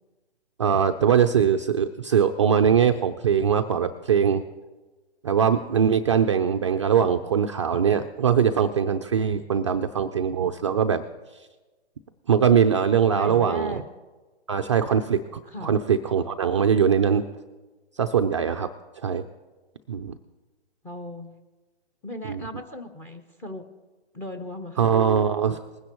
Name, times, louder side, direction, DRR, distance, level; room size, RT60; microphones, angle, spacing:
voice 1, 0.6-4.4 5.2-11.0 12.3-13.8 14.5-15.2 15.6-17.2 18.0-18.7 19.0-19.3 19.9-20.2 22.2-22.4 24.8-25.6, right 7 dB, 30° right, 5 dB, 0.4 m, -21 dB
voice 2, 13.1-13.8 15.5-15.8 20.8-21.3 22.0-23.7 24.1-25.0, left 1 dB, 5° left, 6 dB, 0.7 m, -37 dB
20.5 x 9.9 x 3.0 m, 1.2 s
hypercardioid pair, 140°, 33 cm